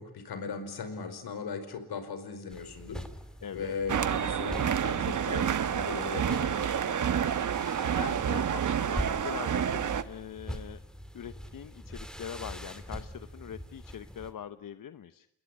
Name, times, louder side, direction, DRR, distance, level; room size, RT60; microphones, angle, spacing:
voice 1, 0.0-3.1 3.5-7.0, left 5 dB, 75° left, 10 dB, 5.1 m, -38 dB
sound 1, 2.5-14.3, equal, ahead, 2.7 m, -43 dB
voice 2, 3.4-3.8 7.9-10.8 11.1-15.3, left 9 dB, 55° left, 11 dB, 1.0 m, -42 dB
sound 2, 3.9-10.0, right 8 dB, 50° right, 1.2 m, -29 dB
28.5 x 21.0 x 9.8 m, 0.76 s
cardioid pair, 105°, 38 cm